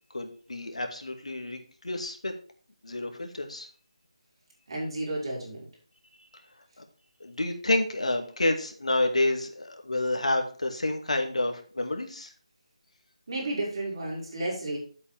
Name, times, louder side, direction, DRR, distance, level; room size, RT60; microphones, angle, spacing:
voice 1, 0.1-1.6 1.8-2.3 2.8-3.7 6.8-6.9 7.2-12.3, left 2 dB, 80° left, 4 dB, 2.3 m, -29 dB
voice 2, 4.7-5.7 13.3-14.8, right 2 dB, 50° right, -3 dB, 5.6 m, -32 dB
10.0 x 8.2 x 3.5 m, 0.41 s
figure-of-eight pair, 165°, 3 cm